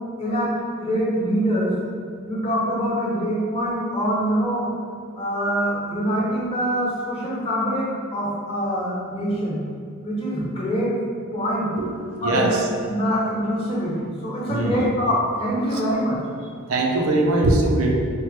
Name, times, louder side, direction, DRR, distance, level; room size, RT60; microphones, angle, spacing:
voice 1, 0.8-1.7 2.2-4.7 5.2-9.6 10.0-10.9 11.3-11.7 12.2-16.2, equal, 30° left, -7 dB, 0.9 m, -24 dB
voice 2, 12.2-12.6 14.4-14.8 15.6-15.8 16.7-17.9, right 2 dB, 85° right, 0 dB, 0.5 m, -21 dB
4.3 x 2.1 x 3.1 m, 2.2 s
head